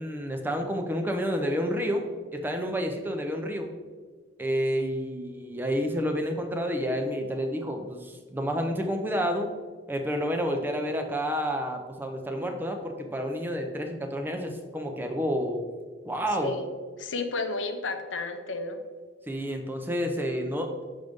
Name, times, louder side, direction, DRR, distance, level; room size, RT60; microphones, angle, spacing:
voice 1, 0.0-2.0 2.3-3.7 4.4-9.5 9.9-15.6 16.0-16.5 19.3-20.7, equal, 10° right, 3 dB, 0.5 m, -29 dB
voice 2, 17.0-18.8, left 3 dB, 75° left, 7 dB, 0.7 m, -32 dB
6.4 x 5.2 x 3.5 m, 1.5 s
head